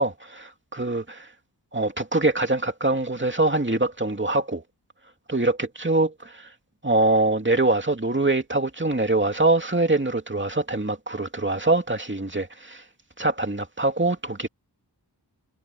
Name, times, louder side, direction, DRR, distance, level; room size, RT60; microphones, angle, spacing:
voice 1, 0.0-1.3 1.7-4.6 5.3-6.5 6.8-12.8 13.2-14.5, right 2 dB, 25° right, 2.5 m, -24 dB
wide cardioid pair, 65°, 42 cm